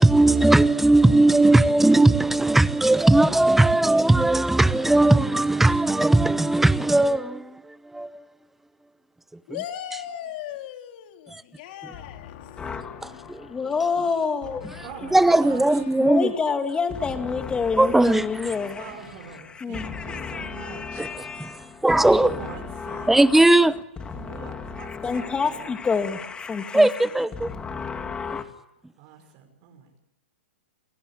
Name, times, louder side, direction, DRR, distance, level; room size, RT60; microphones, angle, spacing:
voice 1, 0.0-8.2 11.3-11.4 13.0-13.5 15.1-16.3 17.8-18.5 21.0-21.1 21.4-21.5 21.8-22.4 23.1-23.8 26.7-27.5, right 2 dB, 5° right, 0.9 m, -18 dB
voice 2, 9.5-13.9 14.4-16.4, left 10 dB, 50° left, 3.3 m, -39 dB
voice 3, 12.6-14.8 16.0-18.9 19.5-23.4 24.1-27.1 27.4-28.4, left 5 dB, 15° left, 2.6 m, -29 dB
voice 4, 14.8-15.8 18.7-21.0 22.3-23.2 24.1-25.6 29.0-30.1, right 7 dB, 45° right, 5.4 m, -43 dB
29.0 x 18.5 x 8.6 m
hypercardioid pair, 125°, 7 cm